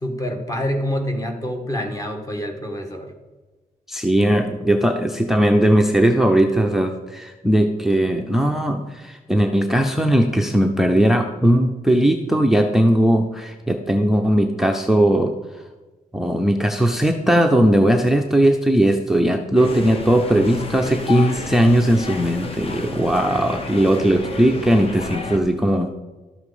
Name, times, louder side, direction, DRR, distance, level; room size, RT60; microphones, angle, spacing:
voice 1, 0.0-3.1, equal, 25° left, 3 dB, 1.5 m, -26 dB
voice 2, 3.9-15.3 16.1-25.9, right 1 dB, 5° right, 5 dB, 0.6 m, -18 dB
sound 1, 19.6-25.4, left 4 dB, 40° left, 1.0 m, -31 dB
12.0 x 7.3 x 4.9 m, 1.2 s
wide cardioid pair, 170°, 15 cm